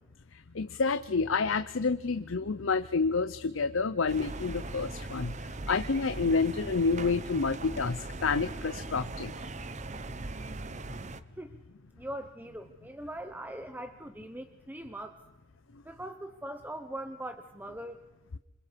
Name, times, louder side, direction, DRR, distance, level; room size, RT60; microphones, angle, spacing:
voice 1, 0.5-5.3 5.7-9.3, left 4 dB, 90° left, 12 dB, 0.7 m, -29 dB
sound 1, 4.1-11.2, right 2 dB, 35° right, 0.9 m, -40 dB
voice 2, 12.0-15.2 15.8-18.0, right 1 dB, 10° right, 7 dB, 0.9 m, -41 dB
28.0 x 26.0 x 5.2 m, 1.0 s
head